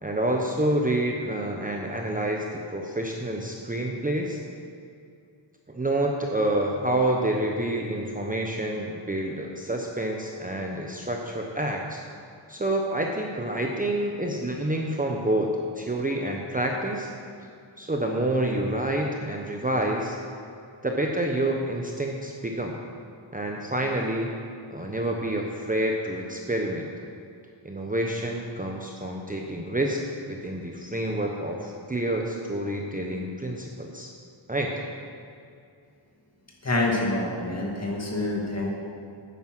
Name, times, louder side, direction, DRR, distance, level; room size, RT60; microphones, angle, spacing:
voice 1, 0.0-4.4 5.7-12.0 12.5-17.1 17.8-20.2 20.8-22.8 23.3-24.3 24.7-26.9 27.6-34.1 34.5-34.8, right 1 dB, 15° right, 0 dB, 0.9 m, -28 dB
voice 2, 36.6-38.7, left 2 dB, 30° left, -1 dB, 2.1 m, -26 dB
9.6 x 9.4 x 6.1 m, 2.4 s
wide cardioid pair, 120°, 49 cm